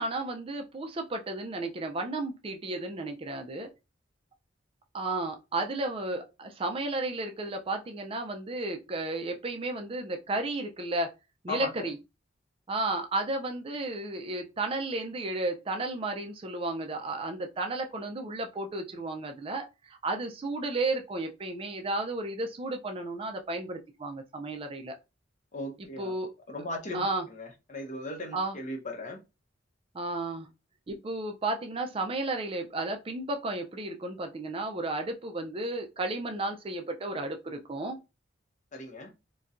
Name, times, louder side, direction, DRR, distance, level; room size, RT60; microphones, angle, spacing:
voice 1, 0.0-3.7 4.9-11.1 11.4-12.0 12.7-24.9 25.8-26.3 26.9-27.2 28.3-28.6 29.9-30.5 30.9-38.0, right 2 dB, 30° right, 0.4 m, -33 dB
voice 2, 11.5-11.9 25.5-26.1 26.5-29.2 38.7-39.1, left 2 dB, 40° left, 0.7 m, -38 dB
4.0 x 2.2 x 2.4 m
head